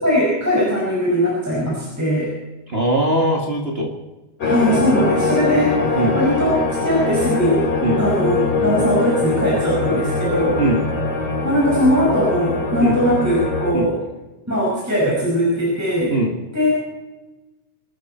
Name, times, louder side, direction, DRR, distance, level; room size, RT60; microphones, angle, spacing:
voice 1, 0.0-2.3 4.4-6.6 6.8-7.7 8.0-10.6 11.4-14.0 14.5-16.1 16.5-16.8, equal, 5° right, -5 dB, 5.2 m, -20 dB
voice 2, 2.7-3.9 5.9-6.2 7.8-8.0 10.6-10.9 12.8-13.0 13.7-13.9 16.1-16.4, right 1 dB, 85° right, 0 dB, 0.5 m, -20 dB
sound 1, 4.4-13.7, left 3 dB, 40° left, 3.6 m, -22 dB
25.0 x 13.0 x 4.4 m, 1.1 s
omnidirectional pair, 4.5 m